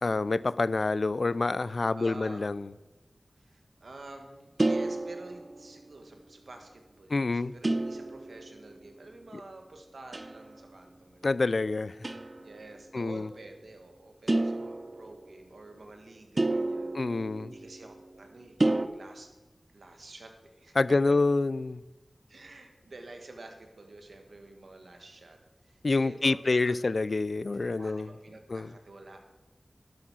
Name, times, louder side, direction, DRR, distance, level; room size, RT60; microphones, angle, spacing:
voice 1, 0.0-2.7 7.1-7.5 9.3-9.4 11.2-12.0 12.9-13.3 16.9-17.5 20.8-21.8 25.8-28.1 28.5-28.7, left 3 dB, 65° left, 18 dB, 0.4 m, -27 dB
voice 2, 1.9-2.5 3.4-11.3 12.4-16.9 17.4-19.3 19.7-21.2 22.3-26.7 27.7-29.2, right 2 dB, 85° right, 4 dB, 1.6 m, -49 dB
sound 1, 4.6-5.9 7.6-8.8 10.1-10.6 12.0-12.5 14.3-15.4 16.4-18.0 18.6-18.9, right 2 dB, 40° right, 0.6 m, -30 dB
11.5 x 7.9 x 6.2 m, 1.1 s
wide cardioid pair, 75°, 0 cm